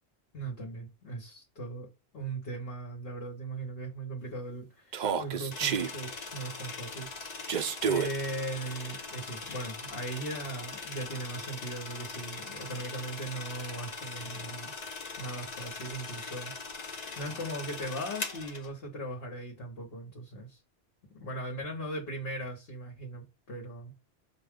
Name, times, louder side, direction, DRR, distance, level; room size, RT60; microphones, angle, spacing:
voice 1, 0.3-7.4 7.8-14.7 15.2-16.5 16.8-20.6 21.1-23.9, right 2 dB, 55° left, 1.2 m, -39 dB
Human voice, 4.9-5.9 7.5-8.1, right 7 dB, 60° right, 0.5 m, -29 dB
sound 1, 5.5-18.7, left 4 dB, 40° left, 0.8 m, -41 dB
5.9 x 2.3 x 3.5 m
omnidirectional pair, 1.2 m